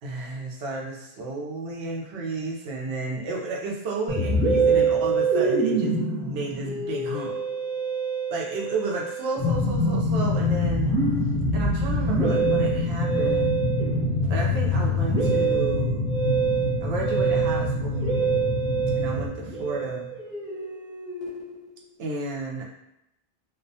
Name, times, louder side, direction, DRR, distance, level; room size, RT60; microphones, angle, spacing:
voice 1, 0.0-7.3 8.3-10.9 11.5-13.6 14.3-16.0 16.8-18.2 18.9-20.1 22.0-22.7, right 3 dB, 90° right, -1 dB, 0.9 m, -32 dB
Musical instrument, 4.1-21.7, right 3 dB, 5° right, 0.3 m, -26 dB
sound 1, 9.4-19.3, left 2 dB, 60° left, 0.7 m, -26 dB
2.3 x 2.1 x 2.6 m, 0.84 s
omnidirectional pair, 1.0 m